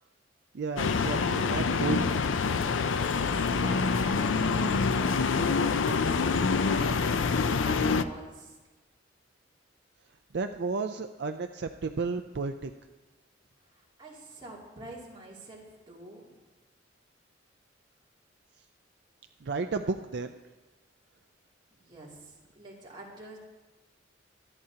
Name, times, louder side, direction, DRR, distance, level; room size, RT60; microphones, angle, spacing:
voice 1, 0.5-2.0 10.3-12.7 19.4-20.3, right 4 dB, 60° right, 7 dB, 0.5 m, -32 dB
sound 1, 0.8-8.0, left 4 dB, 90° left, 0.5 m, -26 dB
voice 2, 3.1-6.9 7.5-8.6 14.0-16.4 21.7-23.4, right 2 dB, 25° right, -5 dB, 2.7 m, -46 dB
24.5 x 8.8 x 2.9 m, 1.2 s
head